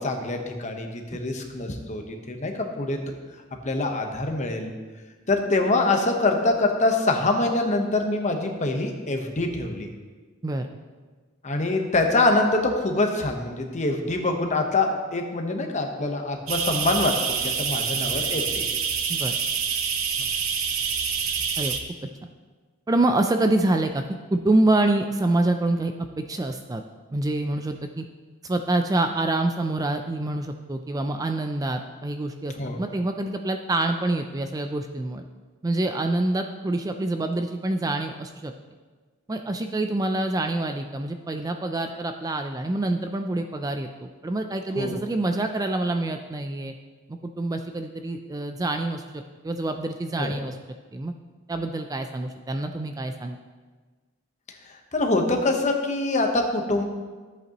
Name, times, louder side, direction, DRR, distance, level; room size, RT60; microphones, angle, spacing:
voice 1, 0.0-3.0 3.6-4.7 5.3-9.9 11.4-18.8 32.6-32.8 44.8-44.9 50.2-50.3 54.9-56.8, left 2 dB, 35° left, 3 dB, 1.0 m, -24 dB
sound 1, 16.5-21.8, right 6 dB, 75° right, 0.9 m, -26 dB
voice 2, 22.9-24.0 24.3-26.8 27.1-28.0 28.4-35.2 35.6-38.5 39.3-46.7 47.2-50.6 50.9-51.1 51.5-53.4, right 2 dB, 15° right, 6 dB, 0.3 m, -26 dB
13.5 x 8.1 x 3.0 m, 1.4 s
head